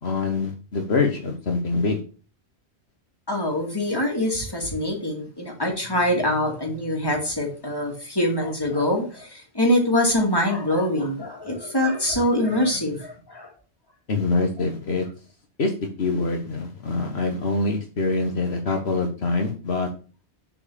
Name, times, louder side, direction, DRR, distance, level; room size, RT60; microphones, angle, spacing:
voice 1, 0.0-2.0 14.1-15.1 15.6-15.7 16.0-19.9, left 3 dB, 65° left, 3 dB, 1.5 m, -24 dB
voice 2, 3.3-13.5 18.7-18.8, left 1 dB, 20° left, 0 dB, 2.6 m, -24 dB
7.4 x 4.7 x 7.1 m, 0.37 s
omnidirectional pair, 1.1 m